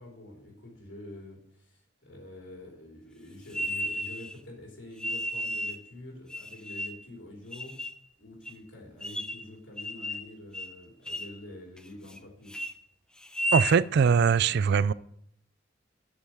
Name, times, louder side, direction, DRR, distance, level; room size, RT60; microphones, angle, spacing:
voice 1, 0.0-7.8 8.2-12.6, left 1 dB, 75° left, 3.0 m, -47 dB
sound 1, 3.5-4.3 5.0-5.8 6.3-7.1 7.5-8.0 8.5-8.6 9.0-9.5 9.8-10.3 10.5-10.8 11.1-11.4 11.8-12.2 12.5-12.7 13.2-13.8, equal, 5° left, 0.4 m, -33 dB
voice 2, 13.5-14.9, right 6 dB, 60° right, 0.4 m, -22 dB
8.2 x 5.5 x 7.7 m
head